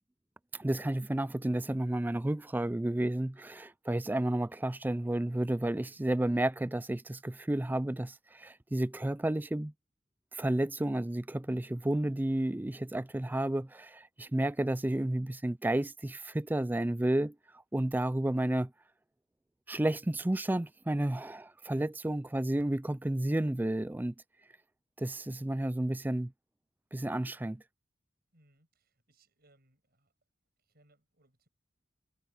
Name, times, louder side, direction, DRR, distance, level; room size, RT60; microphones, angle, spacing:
voice 1, 0.5-9.7 10.3-17.4 17.7-18.7 19.7-24.1 25.0-26.3 26.9-27.6, right 1 dB, 10° right, 0.3 m, -31 dB
voice 2, 28.3-30.1 30.6-31.5, right 2 dB, 50° right, 6.7 m, -68 dB
head